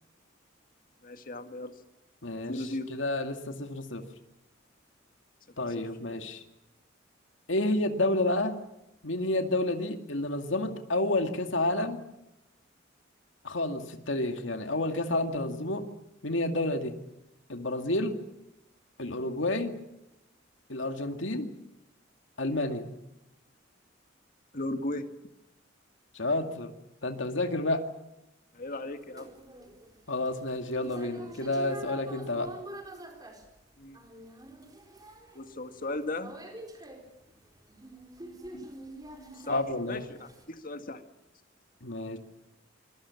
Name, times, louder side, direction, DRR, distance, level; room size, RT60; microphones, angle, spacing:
voice 1, 1.0-1.7 2.5-2.9 5.6-5.7 24.5-25.0 28.5-29.3 33.8-34.0 35.3-36.4 38.5-38.7 39.3-41.0, left 2 dB, 45° left, 7 dB, 2.0 m, -36 dB
voice 2, 2.2-2.6 2.9-4.1 5.6-6.4 7.5-8.6 9.0-12.0 13.4-15.9 16.2-17.0 17.5-18.2 19.0-19.8 20.7-21.5 22.4-22.9 26.1-26.7 27.0-27.8 30.1-32.5 39.5-40.1 41.8-42.2, left 2 dB, 75° left, 6 dB, 2.3 m, -30 dB
sound 1, 28.7-40.4, right 1 dB, 20° right, 4.4 m, -46 dB
26.5 x 22.5 x 7.2 m, 0.87 s
head